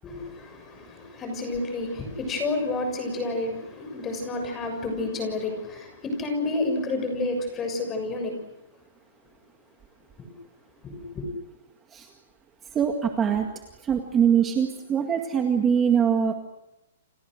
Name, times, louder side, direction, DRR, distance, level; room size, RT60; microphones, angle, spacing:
voice 1, 0.0-8.4 10.2-10.3 10.8-11.2, left 2 dB, 15° left, 5 dB, 6.8 m, -30 dB
voice 2, 12.7-13.5 13.8-16.3, right 7 dB, 15° right, 3 dB, 1.9 m, -23 dB
29.5 x 28.5 x 6.5 m, 0.92 s
hypercardioid pair, 165°, 0 cm